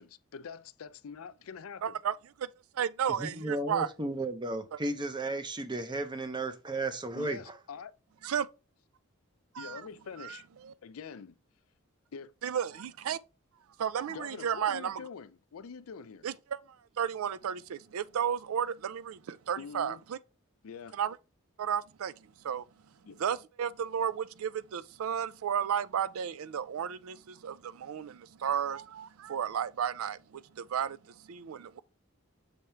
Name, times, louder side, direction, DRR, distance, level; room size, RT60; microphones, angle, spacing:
voice 1, 0.0-2.0 7.1-8.0 9.6-10.5 10.8-11.4 12.1-12.3 14.1-16.3 19.6-20.0 20.6-21.0 23.1-23.2, left 6 dB, 80° left, 0.4 m, -45 dB
voice 2, 1.8-2.1 2.4-2.5 2.7-3.9 8.2-8.5 9.5-9.8 10.2-10.4 10.6-10.7 12.4-13.2 13.8-15.0 16.2-16.6 17.0-20.2 20.9-21.2 21.6-22.1 22.4-22.7 23.2-31.8, right 8 dB, 85° right, 0.4 m, -33 dB
voice 3, 3.2-7.6, right 2 dB, 20° right, 0.6 m, -34 dB
6.5 x 3.5 x 4.4 m
head